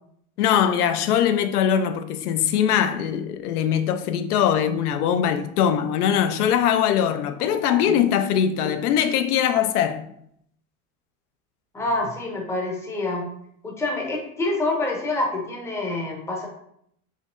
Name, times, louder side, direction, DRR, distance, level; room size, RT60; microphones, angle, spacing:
voice 1, 0.4-10.0, left 9 dB, 90° left, 0.5 m, -21 dB
voice 2, 7.4-8.0 11.7-13.2 13.6-16.5, left 2 dB, 5° left, 0.5 m, -27 dB
4.2 x 2.9 x 2.4 m
supercardioid pair, 125°, 44 cm